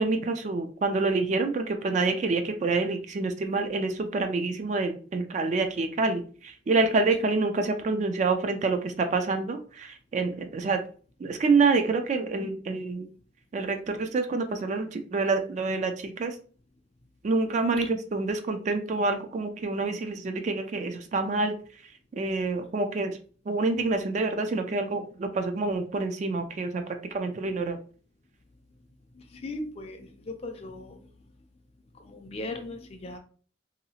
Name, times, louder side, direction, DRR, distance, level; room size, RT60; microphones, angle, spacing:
voice 1, 0.0-10.8 11.2-13.1 13.5-16.3 17.2-21.5 22.2-23.2 23.5-27.8, right 3 dB, 40° right, 7 dB, 0.3 m, -27 dB
voice 2, 29.4-31.0 32.0-33.2, left 2 dB, 35° left, 5 dB, 0.4 m, -38 dB
2.7 x 2.3 x 2.7 m, 0.41 s
head